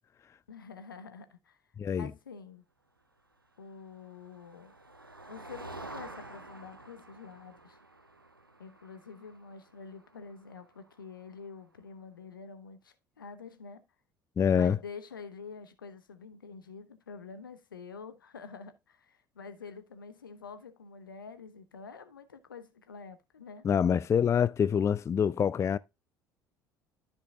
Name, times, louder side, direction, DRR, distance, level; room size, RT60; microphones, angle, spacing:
voice 1, 0.5-1.6 2.0-2.6 3.6-4.7 5.2-7.8 8.6-13.8 14.6-23.7, left 5 dB, 80° left, 1.1 m, -47 dB
voice 2, 1.8-2.1 14.4-14.8 23.6-25.8, left 7 dB, 25° left, 0.4 m, -26 dB
Motor vehicle (road), 3.7-11.5, right 2 dB, 90° right, 0.7 m, -50 dB
13.5 x 5.2 x 2.4 m
figure-of-eight pair, 60°, 11 cm